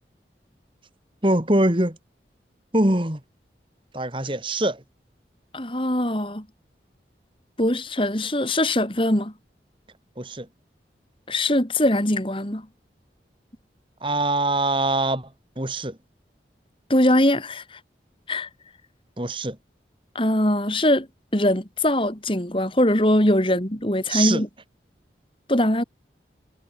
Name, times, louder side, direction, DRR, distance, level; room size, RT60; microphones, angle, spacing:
voice 1, 1.2-2.0 2.7-3.2 3.9-4.8 10.2-10.5 14.0-15.3 15.6-16.0 19.2-19.6 24.1-24.4, right 1 dB, 30° right, 2.7 m, -23 dB
voice 2, 5.5-6.4 7.6-9.3 11.3-12.6 16.9-17.6 18.3-18.5 20.1-21.1 21.3-24.5 25.5-25.8, left 1 dB, 30° left, 3.2 m, -21 dB
head